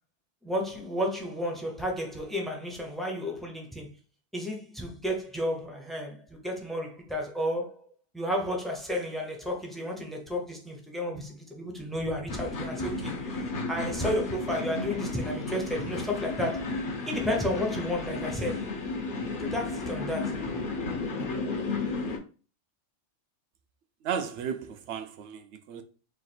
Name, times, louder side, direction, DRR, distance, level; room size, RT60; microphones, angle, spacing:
voice 1, 0.4-3.9 4.3-7.8 8.1-16.7 17.1-18.7 19.4-20.4, equal, ahead, 0.6 m, -32 dB
sound 1, 12.3-22.2, left 3 dB, 50° left, 0.8 m, -33 dB
voice 2, 24.0-25.8, right 7 dB, 75° right, 0.8 m, -34 dB
3.1 x 2.5 x 4.2 m
omnidirectional pair, 1.2 m